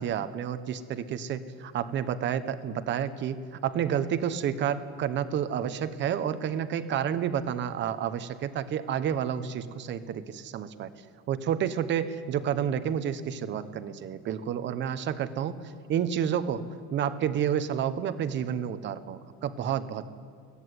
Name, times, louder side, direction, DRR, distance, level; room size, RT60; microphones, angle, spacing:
voice 1, 0.0-3.4 3.6-10.9 11.3-15.6 15.9-16.6 16.9-20.0, right 9 dB, 30° right, 11 dB, 1.1 m, -30 dB
22.5 x 16.5 x 9.6 m, 2.2 s
cardioid pair, 155°, 35 cm